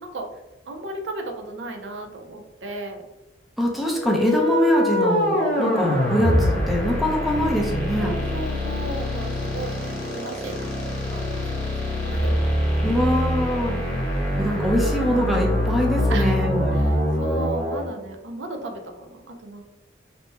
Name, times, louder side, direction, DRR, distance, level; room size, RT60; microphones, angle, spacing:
voice 1, 0.7-3.0 8.0-11.7 12.1-12.4 16.1-16.4 16.7-19.6, right 2 dB, 85° right, 3 dB, 0.5 m, -35 dB
voice 2, 3.6-8.1 12.8-13.8 14.4-16.8, equal, ahead, -2 dB, 0.5 m, -23 dB
sound 1, 4.0-17.8, left 1 dB, 40° left, 0.9 m, -24 dB
2.8 x 2.2 x 3.2 m, 0.97 s
head